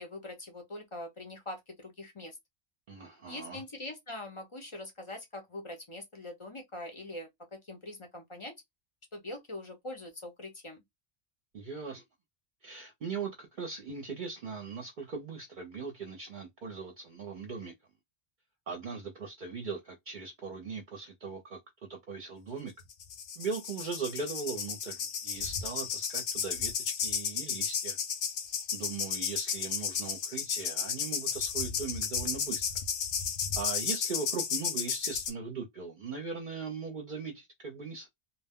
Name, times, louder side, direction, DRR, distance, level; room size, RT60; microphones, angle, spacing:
voice 1, 0.0-2.4 3.3-8.5 9.1-10.8, left 1 dB, 35° left, 0.6 m, -43 dB
voice 2, 2.9-3.6 11.5-12.0 12.6-17.7 18.7-21.6 21.9-22.7 23.4-28.0 28.7-32.7 33.6-38.1, right 5 dB, 55° right, 0.7 m, -39 dB
sound 1, 22.9-35.3, left 7 dB, 70° left, 0.8 m, -33 dB
2.3 x 2.1 x 3.4 m
omnidirectional pair, 1.1 m